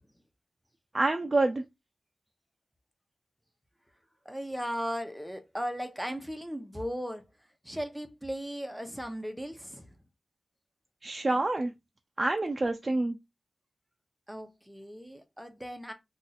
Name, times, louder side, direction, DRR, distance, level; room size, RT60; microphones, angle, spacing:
voice 1, 0.9-1.6 11.0-11.7 12.2-13.2, right 2 dB, 35° right, 0.4 m, -27 dB
voice 2, 4.2-7.2 7.6-9.9 14.3-15.9, equal, 5° right, 0.8 m, -37 dB
2.6 x 2.4 x 4.1 m
cardioid pair, 55°, 0 cm